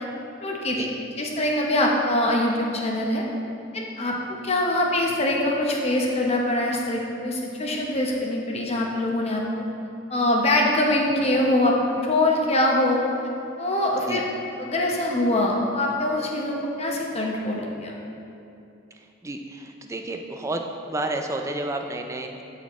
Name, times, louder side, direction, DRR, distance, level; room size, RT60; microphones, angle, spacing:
voice 1, 0.4-0.9 1.2-3.2 3.7-9.6 10.1-13.0 13.6-14.2 14.6-17.9, left 1 dB, 30° left, -1 dB, 0.8 m, -23 dB
voice 2, 19.2-20.6 20.9-22.4, right 2 dB, 15° right, 3 dB, 0.4 m, -30 dB
12.5 x 4.2 x 3.0 m, 2.7 s
head